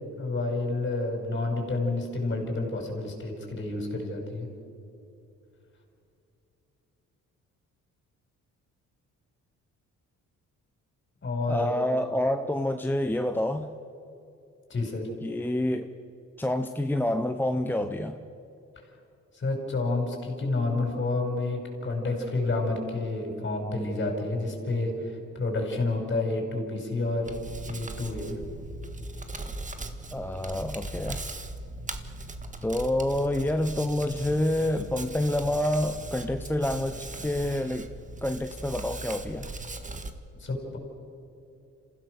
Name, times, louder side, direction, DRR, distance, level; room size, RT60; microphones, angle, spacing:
voice 1, 0.2-4.5 11.2-11.7 14.7-15.0 19.3-27.3 27.7-28.4 40.4-40.8, left 2 dB, 40° left, 2 dB, 5.9 m, -29 dB
voice 2, 11.5-13.7 15.2-15.9 16.4-18.2 30.1-31.2 32.6-37.9 38.2-39.5, left 1 dB, 5° left, 6 dB, 0.9 m, -28 dB
Hands, 27.2-40.1, right 2 dB, 25° right, 1.7 m, -39 dB
27.0 x 16.0 x 6.6 m, 2.7 s
cardioid pair, 90°, 30 cm